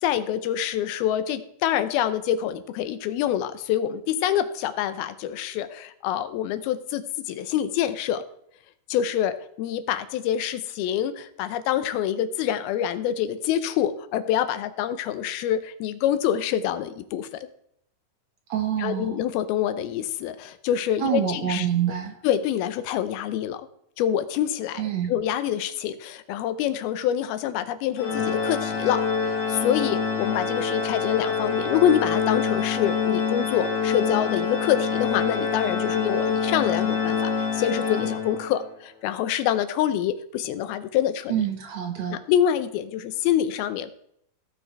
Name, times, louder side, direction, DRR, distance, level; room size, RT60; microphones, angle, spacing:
voice 1, 0.0-8.2 8.9-17.3 18.8-21.7 22.2-23.7 24.0-41.4 42.1-44.0, left 10 dB, 90° left, 11 dB, 2.7 m, -26 dB
voice 2, 18.5-19.2 21.0-22.2 24.8-25.1 41.3-42.2, right 10 dB, 60° right, 4 dB, 2.0 m, -26 dB
Organ, 28.0-38.7, left 5 dB, 60° left, 3.2 m, -26 dB
16.5 x 6.4 x 4.5 m, 0.70 s
omnidirectional pair, 4.3 m